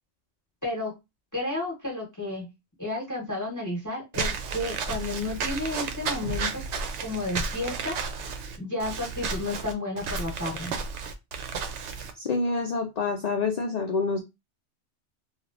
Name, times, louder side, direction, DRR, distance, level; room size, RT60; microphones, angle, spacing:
voice 1, 0.6-0.9 1.3-2.5 2.8-6.6 7.0-8.0 8.6-10.8, left 2 dB, 15° left, -3 dB, 1.1 m, -32 dB
Walk footsteps / Squeak, 4.1-12.1, right 4 dB, 75° right, 0.9 m, -32 dB
voice 2, 12.2-14.2, left 4 dB, 85° left, 4 dB, 0.3 m, -27 dB
3.1 x 2.4 x 2.5 m, 0.22 s
omnidirectional pair, 1.3 m